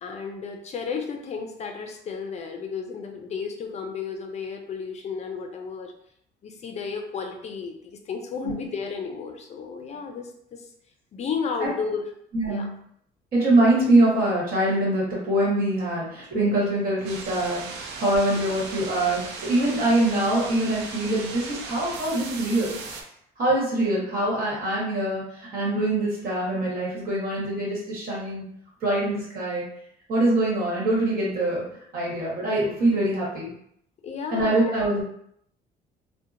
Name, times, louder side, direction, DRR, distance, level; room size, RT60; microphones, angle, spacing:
voice 1, 0.0-5.9 6.4-10.7 11.1-12.1 12.5-12.7 18.4-18.6 34.0-34.8, left 5 dB, 40° left, 4 dB, 0.4 m, -33 dB
voice 2, 12.3-12.7 13.3-17.6 18.0-22.8 23.4-28.4 28.8-29.6 30.1-31.6 31.9-33.5 34.3-35.0, right 1 dB, 60° right, -5 dB, 1.3 m, -24 dB
sound 1, 17.0-23.0, right 4 dB, 80° right, 0.5 m, -37 dB
2.7 x 2.1 x 2.5 m, 0.70 s
cardioid pair, 110°, 17 cm